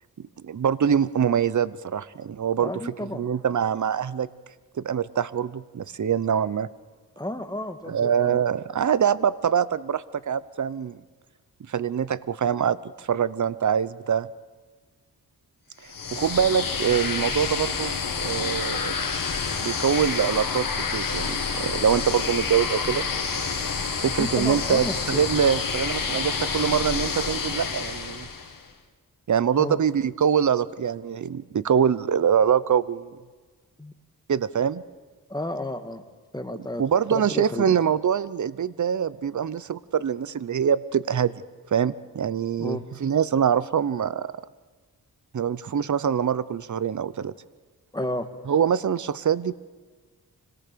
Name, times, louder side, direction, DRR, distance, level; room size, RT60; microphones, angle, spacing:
voice 1, 0.4-4.3 4.8-6.7 7.9-11.0 11.7-14.3 16.1-17.9 18.2-18.9 19.6-23.1 24.0-28.3 29.3-33.1 34.3-34.8 36.8-41.3 41.7-44.3 45.3-47.3 48.5-49.5, right 8 dB, 50° right, 18 dB, 0.8 m, -24 dB
voice 2, 2.6-3.3 7.2-8.4 24.2-25.3 29.6-29.8 33.8-33.9 35.3-36.0 36.3-36.8 37.1-37.7 42.6-42.8 47.9-48.3, left 1 dB, 10° left, 7 dB, 1.8 m, -32 dB
sound 1, 15.8-28.6, left 5 dB, 60° left, 2.2 m, -28 dB
25.5 x 18.0 x 6.8 m, 1.4 s
cardioid pair, 60°, 37 cm